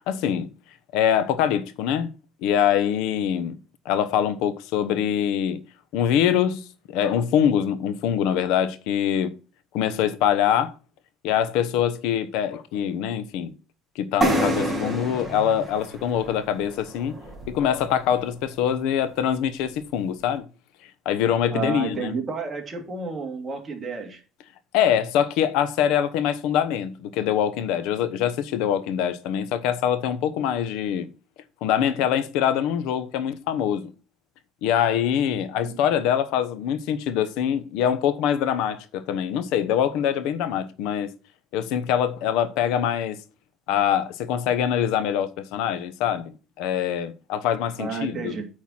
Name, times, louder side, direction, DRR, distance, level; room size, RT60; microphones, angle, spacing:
voice 1, 0.1-0.5 0.9-2.1 2.4-3.6 3.8-5.6 5.9-9.3 9.7-10.7 11.2-13.5 13.9-17.2 17.5-20.5 21.0-22.1 24.7-31.1 31.6-33.9 34.6-41.1 41.5-43.2 43.7-48.3, left 9 dB, 80° left, 1.0 m, -24 dB
sound 1, 14.2-17.8, right 1 dB, 5° right, 3.0 m, -28 dB
voice 2, 21.5-24.2 35.6-35.7 47.8-48.5, right 5 dB, 25° right, 2.6 m, -31 dB
8.9 x 4.6 x 5.6 m
cardioid pair, 145°, 0 cm